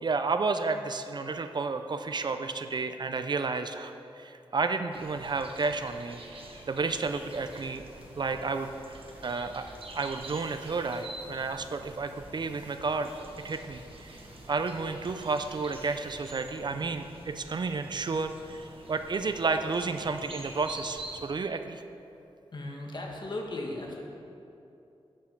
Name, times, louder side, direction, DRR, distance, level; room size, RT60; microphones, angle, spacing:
voice 1, 0.0-6.2 6.7-7.8 8.2-9.7 9.9-13.1 13.4-14.2 14.5-21.8, right 4 dB, 45° right, 8 dB, 0.4 m, -31 dB
sound 1, 4.9-21.3, right 2 dB, 65° right, 1.1 m, -47 dB
sound 2, 6.8-16.5, equal, 15° right, 1.9 m, -56 dB
voice 2, 22.5-24.0, left 2 dB, 50° left, 0 dB, 1.4 m, -36 dB
11.5 x 5.7 x 5.2 m, 2.7 s
wide cardioid pair, 120°, 10 cm